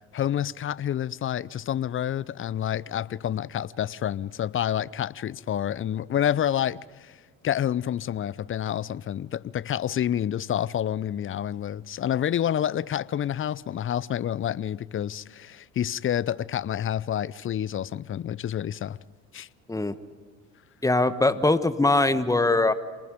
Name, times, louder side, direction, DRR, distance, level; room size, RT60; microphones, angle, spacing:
voice 1, 0.1-7.2 7.4-19.0 19.3-19.5, left 10 dB, 35° left, 0.6 m, -28 dB
voice 2, 20.8-22.7, left 2 dB, 10° left, 1.2 m, -22 dB
27.5 x 19.5 x 5.2 m
hypercardioid pair, 60°, 39 cm